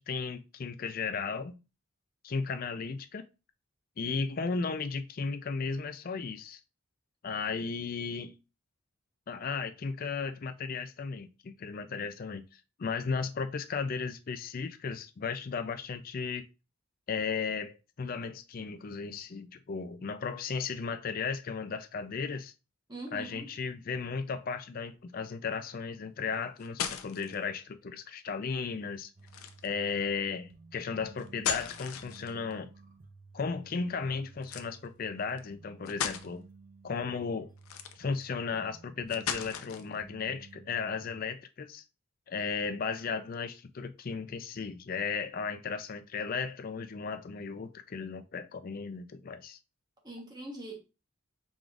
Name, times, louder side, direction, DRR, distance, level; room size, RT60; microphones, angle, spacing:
voice 1, 0.0-1.6 2.2-3.2 4.0-6.6 7.2-8.4 9.3-12.4 12.8-16.5 17.1-22.5 23.1-29.1 29.6-32.7 33.3-36.5 36.8-37.5 38.0-41.8 42.3-49.6, left 5 dB, 40° left, 0.4 m, -35 dB
voice 2, 22.9-23.5 50.0-50.8, right 2 dB, 20° right, 1.0 m, -42 dB
sound 1, 26.4-27.4 29.3-29.8 31.2-32.5 34.4-34.7 35.4-35.5 35.9-36.3 37.6-38.2 39.1-39.9, left 8 dB, 90° left, 0.6 m, -36 dB
sound 2, 29.2-41.2, right 3 dB, 40° right, 0.7 m, -54 dB
4.8 x 3.8 x 2.4 m
head